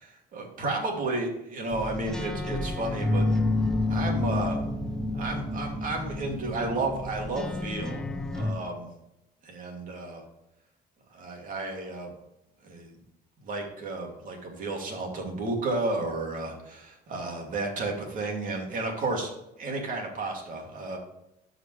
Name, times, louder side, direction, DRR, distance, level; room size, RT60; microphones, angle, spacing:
voice 1, 0.3-3.3 3.9-4.6 5.1-8.0 8.3-8.9 9.4-10.2 11.1-12.1 12.6-12.9 13.4-19.3 19.6-21.0, right 2 dB, 55° right, 1 dB, 2.7 m, -32 dB
sound 1, 1.7-8.5, left 2 dB, 5° left, 1.1 m, -29 dB
13.0 x 5.2 x 3.3 m, 0.85 s
cardioid pair, 110°, 17 cm